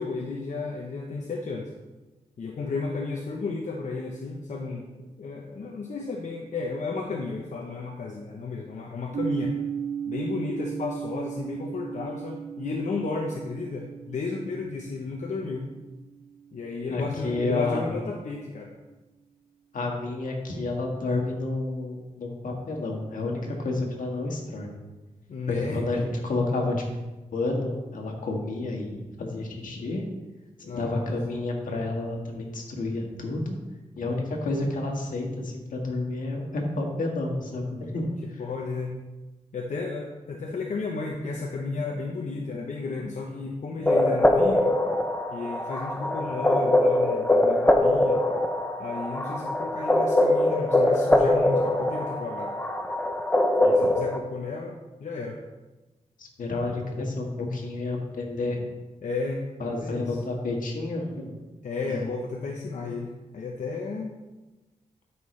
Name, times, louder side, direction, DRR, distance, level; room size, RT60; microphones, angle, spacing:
voice 1, 0.0-1.7 2.4-4.9 5.2-9.6 10.1-15.7 16.5-18.7 25.3-26.0 30.7-31.0 38.0-38.1 38.4-39.0 39.5-44.7 45.3-48.2 48.8-52.5 53.6-55.4 59.0-60.2 61.6-64.1, left 3 dB, 65° left, 0 dB, 0.9 m, -33 dB
sound 1, 9.1-16.9, right 7 dB, 60° right, 0.6 m, -36 dB
voice 2, 16.9-18.0 19.7-24.8 25.5-26.7 27.3-30.0 30.6-33.5 34.0-38.4 53.6-53.9 56.2-58.7 59.6-61.4 61.9-62.2, left 2 dB, 80° left, 0 dB, 1.7 m, -30 dB
sound 2, 43.9-54.2, left 1 dB, 10° left, 0.8 m, -22 dB
12.5 x 5.6 x 3.3 m, 1.1 s
cardioid pair, 75°, 14 cm